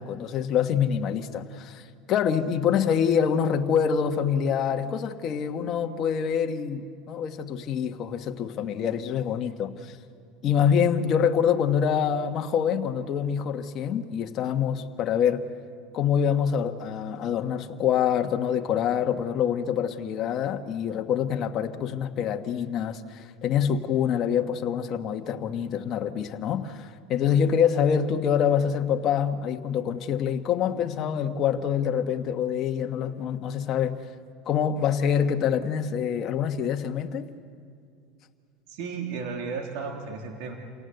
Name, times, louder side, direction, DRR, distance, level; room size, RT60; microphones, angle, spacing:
voice 1, 0.0-10.0 10.4-15.5 15.9-34.0 34.4-37.3, left 8 dB, 45° left, 5 dB, 1.4 m, -26 dB
voice 2, 38.7-40.6, right 5 dB, 70° right, 2 dB, 3.1 m, -34 dB
28.0 x 18.0 x 8.0 m, 2.4 s
supercardioid pair, 115°, 0 cm